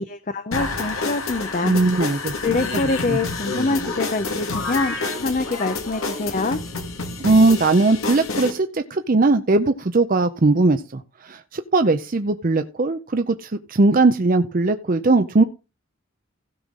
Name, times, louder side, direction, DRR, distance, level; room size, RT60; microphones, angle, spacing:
voice 1, 0.0-1.7 2.4-6.6, left 3 dB, 40° left, 0.6 m, -25 dB
sound 1, 0.5-8.5, left 3 dB, 85° left, 1.9 m, -28 dB
voice 2, 1.6-2.3 2.7-2.8 3.1-3.2 7.2-15.4, right 3 dB, 40° right, 0.6 m, -19 dB
16.0 x 5.7 x 3.7 m
head